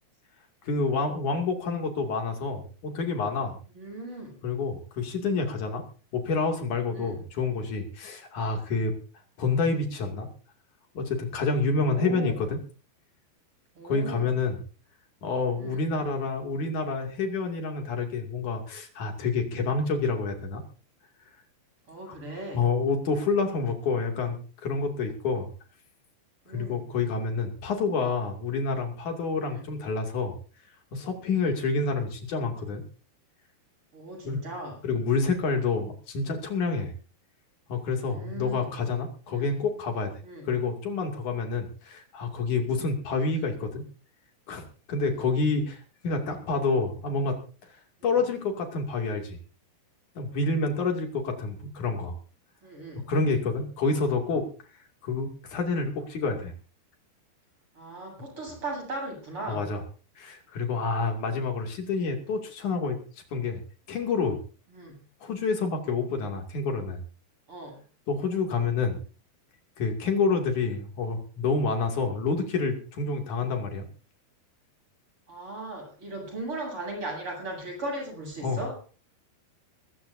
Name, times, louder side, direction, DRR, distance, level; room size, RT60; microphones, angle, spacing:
voice 1, 0.6-3.6 4.4-5.8 6.1-8.9 9.4-10.3 11.0-12.6 13.8-14.6 15.2-20.6 22.1-22.2 22.5-25.5 26.5-30.4 30.9-32.8 34.3-34.4 34.8-36.9 37.7-40.1 40.4-43.9 44.5-47.4 48.0-49.4 50.2-52.1 53.1-54.5 55.0-56.5 59.5-59.8 60.2-63.0 63.3-63.6 63.9-64.4 65.2-67.0 68.1-69.0 69.8-73.9 78.4-78.6, left 4 dB, 50° left, 3 dB, 3.6 m, -28 dB
voice 2, 3.7-4.4 6.9-7.2 11.8-12.4 13.8-14.4 15.6-15.8 21.9-22.7 26.5-26.9 29.5-29.7 31.4-31.5 33.9-34.8 38.1-38.7 39.3-39.5 40.2-40.5 42.8-42.9 45.1-45.2 52.6-53.1 57.8-59.7 64.7-65.0 67.5-67.8 75.3-78.8, right 2 dB, 30° right, 1 dB, 8.5 m, -38 dB
22.5 x 14.5 x 2.7 m, 0.36 s
omnidirectional pair, 5.0 m